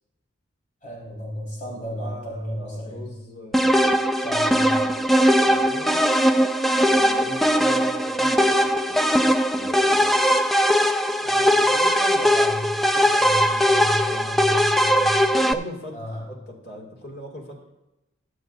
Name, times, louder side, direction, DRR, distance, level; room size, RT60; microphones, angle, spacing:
voice 1, 0.8-3.0 4.2-4.8 11.2-15.2 15.9-16.3, equal, 40° left, -4 dB, 4.7 m, -33 dB
voice 2, 1.7-4.0 4.5-6.0 6.7-9.0 9.6-10.1 14.0-14.4 15.4-17.6, left 1 dB, 55° left, 1 dB, 2.4 m, -41 dB
sound 1, 3.5-15.5, equal, ahead, 0.3 m, -20 dB
21.5 x 7.7 x 2.7 m, 0.95 s
head